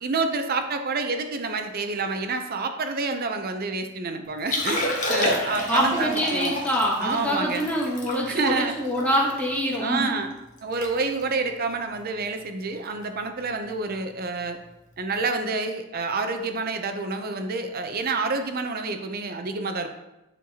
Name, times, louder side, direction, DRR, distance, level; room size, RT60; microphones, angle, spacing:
voice 1, 0.0-6.6 7.0-7.7 8.3-8.7 9.8-10.3 10.6-14.6 15.0-19.9, right 3 dB, 45° right, 6 dB, 0.6 m, -28 dB
Liquid, 4.4-9.8 10.2-10.3 10.6-10.9 11.2-11.4 12.0-12.2 13.7-13.8, left 1 dB, 35° left, 1.1 m, -29 dB
voice 2, 5.7-10.2, equal, 5° left, -3 dB, 1.0 m, -25 dB
9.4 x 4.5 x 2.9 m, 0.96 s
head